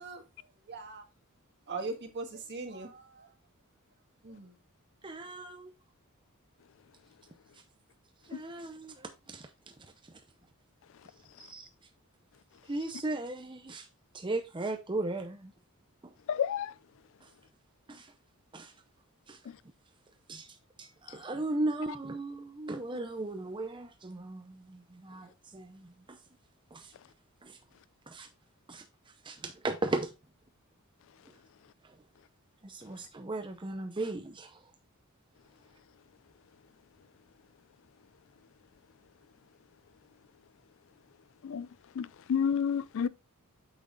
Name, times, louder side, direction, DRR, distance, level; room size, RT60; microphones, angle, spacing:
voice 1, 0.0-1.0 1.7-3.3 4.2-4.5, right 3 dB, 50° right, 1.6 m, -41 dB
voice 2, 5.0-5.7 8.3-9.5 11.4-11.7 12.7-13.9 14.1-15.5 16.0-16.1 17.2-17.3 17.9-18.1 18.5-18.7 19.3-19.4 20.3-26.2 26.7-26.9 27.4-27.6 28.1-28.3 28.7-28.8 29.2-30.1 31.8-31.9 32.6-34.6, right 2 dB, 20° right, 0.6 m, -37 dB
voice 3, 16.3-16.7 41.4-41.7 42.0-43.1, left 7 dB, 60° left, 0.4 m, -30 dB
8.5 x 6.1 x 2.4 m
head